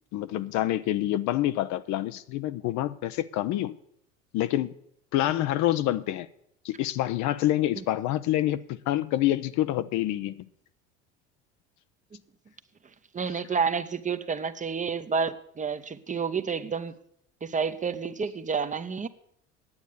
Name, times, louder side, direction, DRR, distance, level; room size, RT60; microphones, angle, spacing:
voice 1, 0.1-3.7 4.3-4.7 5.1-6.3 6.6-10.5, left 14 dB, 55° left, 0.7 m, -27 dB
voice 2, 13.1-16.9 17.4-19.1, right 5 dB, 20° right, 0.8 m, -29 dB
9.7 x 8.2 x 8.4 m
hypercardioid pair, 75°, 34 cm